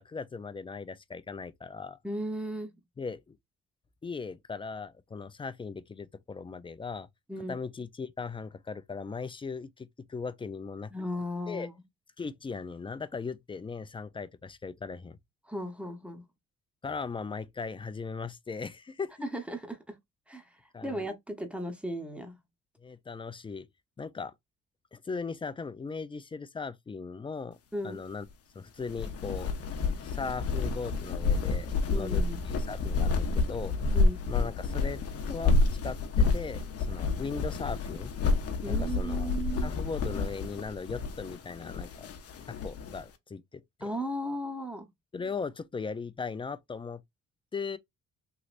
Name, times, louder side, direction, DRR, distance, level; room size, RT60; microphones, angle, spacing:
voice 1, 0.0-2.0 3.0-3.4 4.0-7.1 7.5-10.9 11.5-11.7 12.2-15.2 16.8-19.3 20.7-21.1 22.8-23.7 24.0-24.3 24.9-27.6 27.8-28.3 28.5-29.5 30.0-32.2 32.7-33.8 34.3-35.0 35.3-38.1 38.7-39.3 39.6-42.1 42.5-43.9 45.1-47.0 47.5-47.8, left 4 dB, 20° left, 0.3 m, -38 dB
voice 2, 2.0-2.8 7.3-7.6 10.9-11.8 15.5-16.2 19.2-20.0 20.3-20.5 20.8-22.4 27.7-28.0 31.9-32.4 33.9-34.2 38.6-39.7 43.8-44.9, equal, 5° right, 0.9 m, -36 dB
sound 1, 28.8-43.0, left 3 dB, 50° left, 0.7 m, -29 dB
3.1 x 2.8 x 2.5 m
cardioid pair, 90°, 30 cm